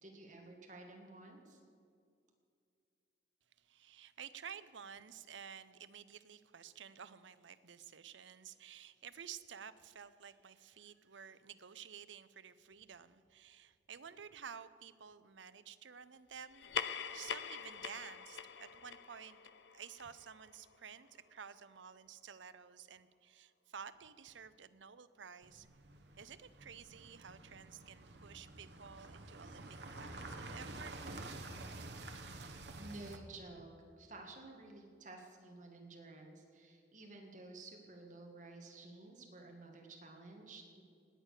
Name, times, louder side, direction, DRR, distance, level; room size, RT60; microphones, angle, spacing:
voice 1, 0.0-1.6 32.8-33.7 34.0-40.8, right 2 dB, 40° right, 1 dB, 1.9 m, -53 dB
voice 2, 3.6-19.4 19.7-25.7 26.1-30.9, right 7 dB, 80° right, 13 dB, 0.7 m, -52 dB
sound 1, 16.5-21.4, left 7 dB, 70° left, 0.6 m, -44 dB
sound 2, 25.4-33.2, right 2 dB, 65° right, 1.2 m, -49 dB
19.0 x 9.0 x 6.6 m, 2.3 s
head